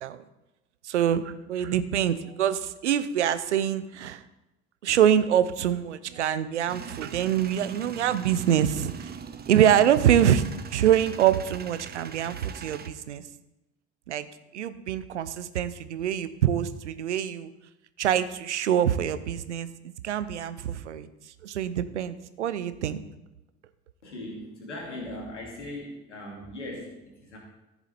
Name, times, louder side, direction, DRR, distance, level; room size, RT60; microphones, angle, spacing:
voice 1, 0.8-4.2 4.8-9.2 9.5-10.4 10.7-13.2 14.1-14.3 14.5-17.5 18.0-21.1 21.4-23.0, right 10 dB, 85° right, 13 dB, 0.6 m, -25 dB
Male speech man speaking / Vehicle / Engine starting, 6.7-12.9, right 6 dB, 30° right, 0.9 m, -41 dB
voice 2, 24.0-27.4, left 1 dB, 90° left, -2 dB, 2.7 m, -39 dB
14.0 x 6.9 x 4.4 m, 0.97 s
figure-of-eight pair, 55°, 34 cm